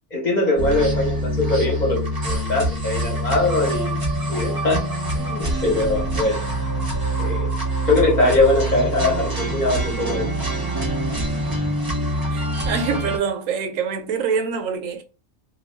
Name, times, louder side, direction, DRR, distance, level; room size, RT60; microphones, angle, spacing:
voice 1, 0.1-3.9 4.3-6.4 7.2-7.5 7.9-10.3, left 2 dB, 40° left, 0.9 m, -21 dB
sound 1, 0.6-13.2, right 1 dB, 30° right, 0.4 m, -25 dB
voice 2, 12.3-15.0, right 6 dB, 85° right, 1.0 m, -25 dB
2.3 x 2.2 x 3.2 m
omnidirectional pair, 1.3 m